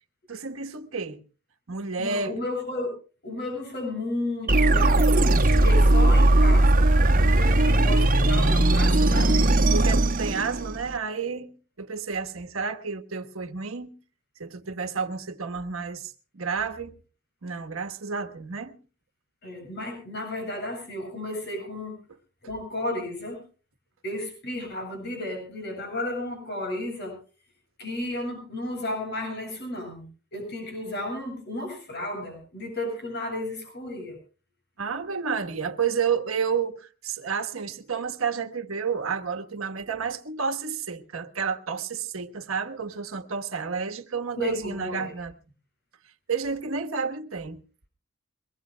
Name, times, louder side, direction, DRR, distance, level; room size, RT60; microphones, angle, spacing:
voice 1, 0.3-1.2 1.7-2.4 9.7-13.9 14.4-16.9 17.4-18.8 34.8-45.3 46.3-47.6, right 5 dB, 80° right, 1.3 m, -30 dB
voice 2, 2.0-2.9 3.2-9.6 19.4-22.0 22.4-23.4 24.0-27.2 27.8-34.2 44.4-45.1, left 1 dB, 55° left, 7.9 m, -33 dB
sound 1, 4.5-10.9, right 1 dB, 45° right, 1.8 m, -19 dB
23.0 x 20.0 x 2.2 m
head